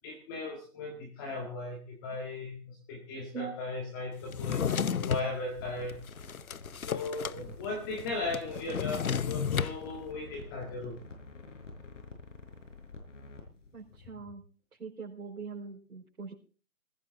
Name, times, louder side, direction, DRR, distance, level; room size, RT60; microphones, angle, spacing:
voice 1, 0.0-5.9 6.9-11.0, left 3 dB, 15° left, 2 dB, 1.9 m, -37 dB
Drawer open or close, 4.3-5.3 5.9-7.4 7.6-7.7 8.0-9.8, left 7 dB, 70° left, 0.9 m, -32 dB
sound 1, 5.5-14.1, left 3 dB, 55° left, 5.8 m, -48 dB
voice 2, 13.7-14.4 14.8-16.3, right 5 dB, 85° right, -5 dB, 4.9 m, -42 dB
20.0 x 16.0 x 3.8 m, 0.36 s
hypercardioid pair, 160°, 44 cm